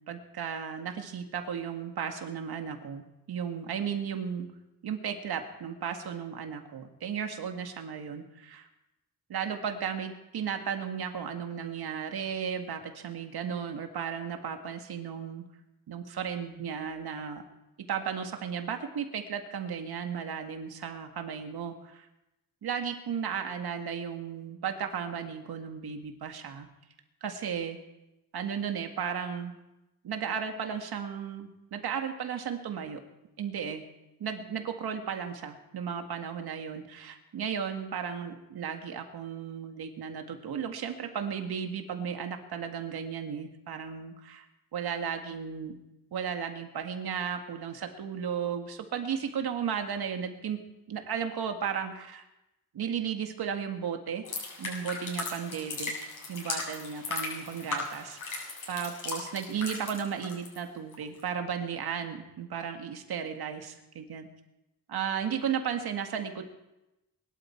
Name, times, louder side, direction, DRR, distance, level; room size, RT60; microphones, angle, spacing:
voice 1, 0.1-4.5 4.8-8.6 9.3-15.4 15.9-17.4 17.9-22.1 22.6-26.7 27.2-27.8 28.3-29.5 30.0-33.0 33.4-33.8 34.2-44.5 44.7-45.8 46.1-50.6 50.9-52.2 52.7-54.3 54.6-56.0 56.3-64.3 64.9-66.4, right 7 dB, 75° right, 5 dB, 2.0 m, -35 dB
sound 1, 54.2-60.6 60.9-61.2, left 3 dB, 55° left, 7.7 m, -37 dB
22.5 x 12.5 x 4.6 m, 0.95 s
cardioid pair, 100°, 38 cm